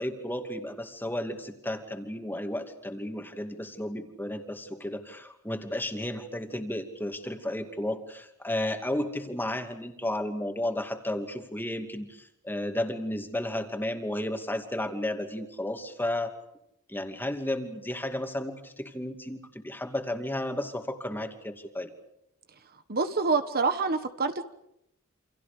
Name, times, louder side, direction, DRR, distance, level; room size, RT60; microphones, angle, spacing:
voice 1, 0.0-16.3 16.9-21.9, left 1 dB, 10° left, 5 dB, 2.5 m, -33 dB
voice 2, 22.9-24.4, right 4 dB, 45° right, 9 dB, 1.3 m, -26 dB
29.0 x 27.0 x 5.2 m, 0.78 s
head